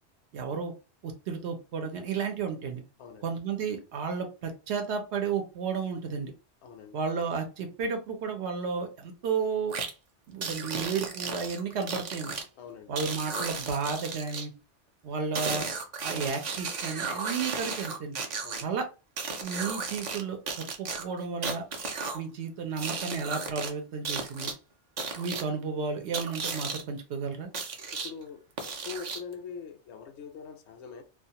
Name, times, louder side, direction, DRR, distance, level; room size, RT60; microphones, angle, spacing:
voice 1, 0.3-0.7 1.0-2.8 3.2-6.3 6.9-9.7 10.3-12.3 12.9-14.5 15.0-15.7 16.0-18.2 18.6-18.9 19.4-21.6 22.1-24.5 25.2-27.5, right 5 dB, 75° right, 0.9 m, -32 dB
voice 2, 3.0-3.3 6.6-7.0 12.6-13.0 18.4-18.7 27.9-31.0, left 6 dB, 75° left, 0.9 m, -43 dB
sound 1, 9.7-9.9 10.4-12.4 13.0-14.5 15.3-18.6 19.2-20.2 20.5-22.2 22.8-23.7 24.0-24.5 25.0-25.4 26.1-26.8 27.5-28.1 28.6-29.3, right 4 dB, 50° right, 0.5 m, -34 dB
2.5 x 2.3 x 2.7 m
omnidirectional pair, 1.2 m